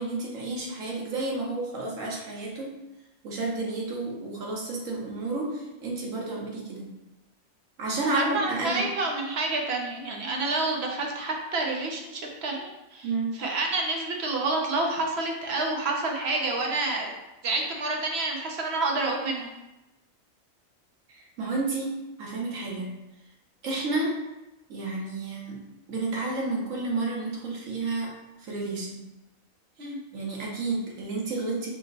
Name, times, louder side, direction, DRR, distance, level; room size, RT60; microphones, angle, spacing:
voice 1, 0.0-2.8 3.2-6.9 7.8-8.9 13.0-13.3 21.1-22.9 23.6-24.1 24.7-25.6 25.9-28.1 28.4-29.0 29.8-31.7, right 3 dB, 75° right, -2 dB, 1.4 m, -31 dB
voice 2, 8.1-17.1 17.4-19.5 29.8-30.0, right 2 dB, 60° right, 0 dB, 0.9 m, -29 dB
5.1 x 2.1 x 3.9 m, 0.99 s
omnidirectional pair, 1.4 m